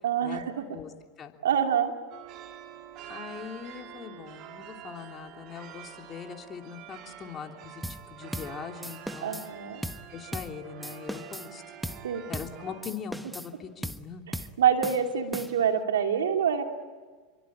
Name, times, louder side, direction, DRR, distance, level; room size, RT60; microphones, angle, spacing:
voice 1, 0.0-0.6 1.4-1.9 9.2-9.8 12.0-12.2 14.6-16.6, right 8 dB, 85° right, 4 dB, 2.8 m, -26 dB
sound 1, 2.1-12.8, right 9 dB, 50° right, 3.2 m, -46 dB
voice 2, 3.1-9.4 10.1-11.6 12.3-14.2, left 7 dB, 35° left, 3 dB, 3.2 m, -41 dB
sound 2, 7.8-8.1 8.3-8.6 8.8-9.5 9.8-10.1 10.3-10.6 10.8-11.5 11.8-12.1 12.3-12.6 12.8-13.5 13.8-14.1 14.3-14.6 14.8-15.7, equal, 5° right, 1.3 m, -37 dB
29.0 x 23.5 x 8.7 m, 1.4 s
hypercardioid pair, 100°, 0 cm